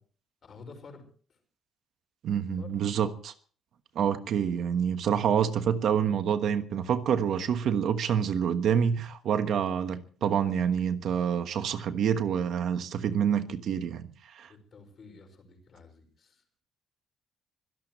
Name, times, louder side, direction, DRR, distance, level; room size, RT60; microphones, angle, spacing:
voice 1, 0.4-1.0 1.3-1.4 2.6-2.7 14.5-16.4, left 4 dB, 35° left, 5.8 m, -50 dB
voice 2, 2.2-3.3 3.9-14.5, right 8 dB, 55° right, 1.3 m, -27 dB
25.0 x 17.0 x 3.2 m
cardioid pair, 165°, 0 cm